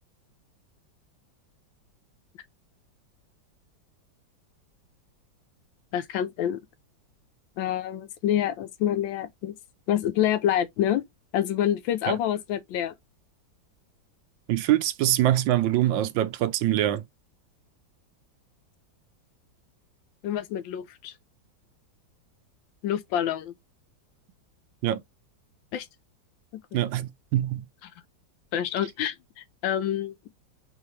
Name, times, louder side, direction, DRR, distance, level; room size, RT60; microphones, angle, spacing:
voice 1, 5.9-6.6 7.6-9.6 9.9-11.0 11.3-12.9 20.2-21.1 22.8-23.5 25.7-25.9 28.5-30.1, left 11 dB, 85° left, 1.4 m, -27 dB
voice 2, 14.5-17.0 24.8-25.0 26.7-27.6, right 13 dB, 80° right, 1.3 m, -24 dB
4.1 x 3.4 x 3.0 m
omnidirectional pair, 2.1 m